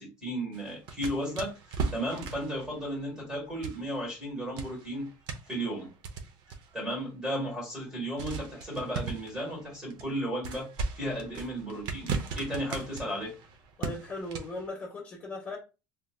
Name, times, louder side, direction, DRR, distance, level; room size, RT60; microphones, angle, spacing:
voice 1, 0.0-5.1 5.5-5.9 6.7-10.7 10.9-13.3, equal, 10° right, 1.5 m, -34 dB
sound 1, 0.5-4.3 4.6-6.9 7.5-7.6 8.2-14.7, right 4 dB, 50° right, 0.6 m, -38 dB
voice 2, 13.8-15.6, left 2 dB, 20° left, 1.1 m, -38 dB
3.4 x 2.8 x 2.2 m
cardioid pair, 170°, 9 cm